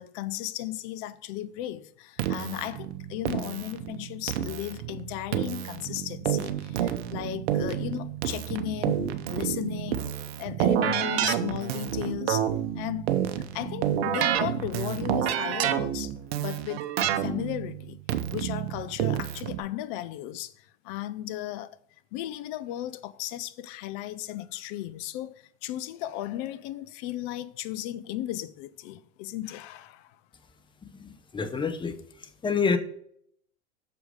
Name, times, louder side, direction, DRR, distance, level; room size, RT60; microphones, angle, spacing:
voice 1, 0.0-12.5 12.7-13.1 13.5-16.8 17.2-18.0 18.3-21.8 22.1-30.2, left 13 dB, 50° left, 0.6 m, -35 dB
Keyboard (musical), 2.2-19.6, right 10 dB, 65° right, 0.9 m, -29 dB
voice 2, 30.9-32.0 32.4-32.8, left 5 dB, 15° left, 0.8 m, -27 dB
7.0 x 4.7 x 5.1 m
hypercardioid pair, 105°, 33 cm